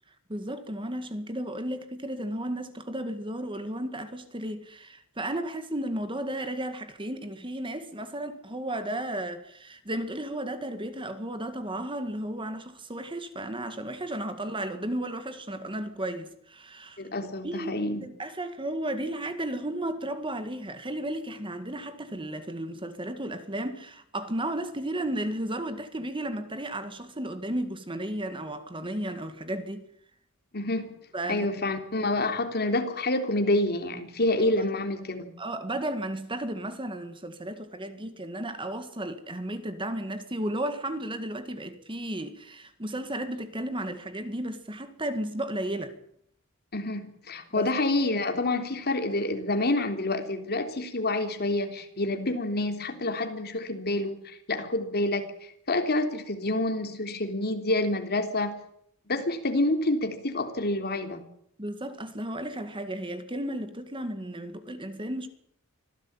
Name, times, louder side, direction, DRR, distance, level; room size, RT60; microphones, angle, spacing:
voice 1, 0.3-17.0 17.4-29.9 31.1-31.5 34.4-34.5 35.4-46.0 47.5-47.7 61.6-65.3, right 1 dB, 25° right, 1.9 m, -34 dB
voice 2, 17.0-18.1 30.5-30.9 31.3-35.3 46.7-55.3 55.7-58.6 59.1-61.2, left 2 dB, 50° left, 3.4 m, -28 dB
25.5 x 16.0 x 8.9 m
head